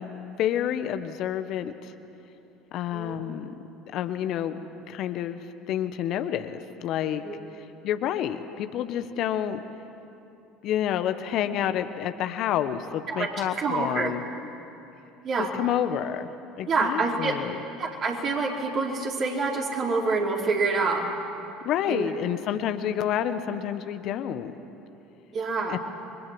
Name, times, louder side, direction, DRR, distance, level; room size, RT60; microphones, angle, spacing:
voice 1, 0.0-1.9 2.7-3.5 3.9-4.6 4.9-5.4 5.7-7.2 7.5-9.6 10.6-14.2 15.5-16.3 16.6-17.6 21.6-24.5 25.7-25.8, left 10 dB, 55° left, 9 dB, 1.2 m, -29 dB
voice 2, 13.1-14.1 15.2-15.5 16.7-17.4 17.8-21.0 21.9-22.1 25.3-25.8, right 3 dB, 45° right, -1 dB, 4.9 m, -27 dB
29.5 x 23.5 x 7.8 m, 2.9 s
figure-of-eight pair, 65°, 0 cm